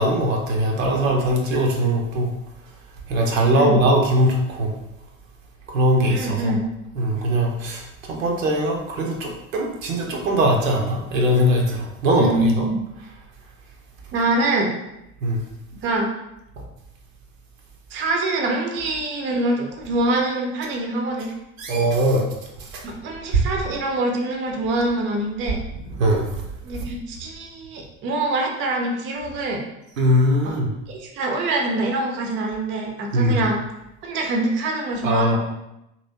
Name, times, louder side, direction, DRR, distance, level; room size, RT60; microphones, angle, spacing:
voice 1, 0.0-2.3 3.1-4.7 5.7-6.6 6.9-12.6 15.2-15.5 21.6-22.3 22.6-22.8 23.3-23.4 25.9-26.4 30.0-30.7 33.1-33.5 35.0-35.4, right 1 dB, 70° right, 0 dB, 0.7 m, -21 dB
voice 2, 6.1-6.7 12.2-12.8 14.1-14.7 15.8-16.1 17.9-21.3 22.8-25.6 26.6-29.6 30.4-30.6 30.9-33.6 34.0-35.4, right 2 dB, 30° right, 1 dB, 0.6 m, -24 dB
2.9 x 2.8 x 2.6 m, 0.87 s
figure-of-eight pair, 65°, 42 cm